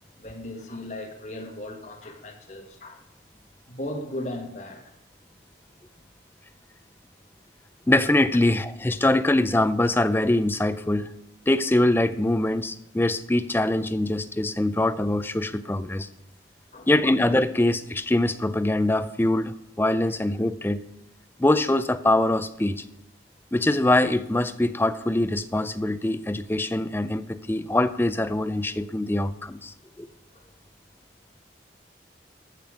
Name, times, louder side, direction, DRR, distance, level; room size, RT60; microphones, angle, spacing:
voice 1, 0.2-3.0 3.7-4.9 16.7-16.9 30.3-30.5, left 1 dB, 40° left, 1.5 m, -37 dB
voice 2, 7.9-11.1 11.5-16.1 16.9-20.8 21.4-22.8 23.5-30.1, left 1 dB, 10° left, 0.4 m, -23 dB
14.0 x 6.0 x 5.0 m
head